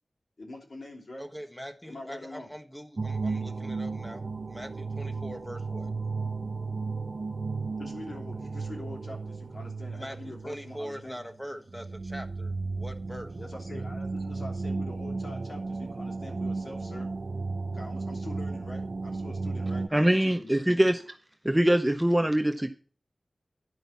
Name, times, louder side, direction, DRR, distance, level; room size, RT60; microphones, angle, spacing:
voice 1, 0.4-1.3 1.8-2.5 7.8-11.2 13.4-17.1 17.7-20.6, left 2 dB, 65° left, 1 dB, 3.2 m, -44 dB
voice 2, 1.2-4.2 4.5-5.9 9.9-13.4, equal, 5° left, 5 dB, 1.3 m, -42 dB
sound 1, 3.0-11.3 11.7-19.9, right 3 dB, 55° right, 0.6 m, -34 dB
voice 3, 19.9-21.2 21.4-22.7, right 1 dB, 15° right, 8 dB, 0.7 m, -23 dB
11.0 x 5.3 x 7.0 m, 0.38 s
wide cardioid pair, 85°, 0 cm